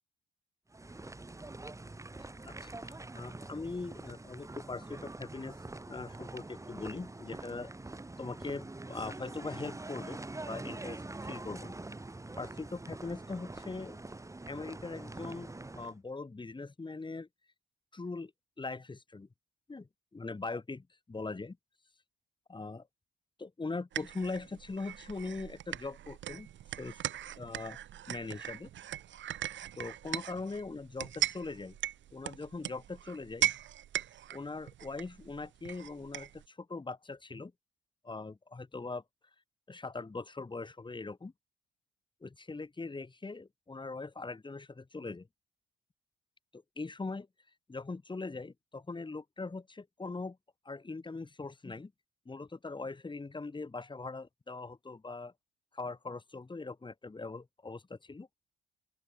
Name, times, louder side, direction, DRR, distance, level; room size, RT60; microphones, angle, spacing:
sound 1, 0.7-15.9, right 2 dB, 15° right, 3.5 m, -45 dB
voice 1, 2.2-5.6 5.9-7.7 8.2-10.2 10.4-11.7 12.4-14.0 14.5-17.3 17.9-18.3 18.6-19.3 19.7-21.6 22.5-22.9 23.4-26.5 26.8-26.9 27.4-27.8 28.1-28.7 29.7-31.8 32.1-33.5 34.3-37.5 38.0-39.0 39.7-41.3 42.2-45.3 46.5-47.3 47.7-50.4 50.6-51.9 52.2-55.3 55.7-58.3, left 3 dB, 25° left, 6.5 m, -41 dB
sound 2, 23.9-36.5, right 11 dB, 70° right, 2.4 m, -39 dB
open air
cardioid pair, 90°, 20 cm